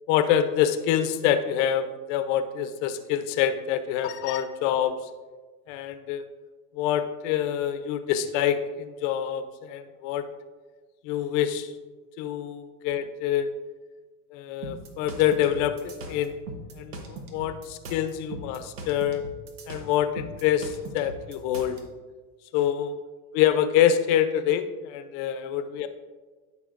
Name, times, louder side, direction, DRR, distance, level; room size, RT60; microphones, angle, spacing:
voice 1, 0.1-4.9 5.7-6.3 6.7-10.3 11.0-11.7 12.2-13.5 14.3-16.4 16.7-19.3 19.7-21.8 22.5-22.9 23.3-25.9, left 10 dB, 50° left, 10 dB, 0.7 m, -26 dB
sound 1, 14.6-21.8, right 2 dB, 90° right, 1.3 m, -40 dB
13.0 x 5.5 x 2.5 m, 1.3 s
supercardioid pair, 125°, 45 cm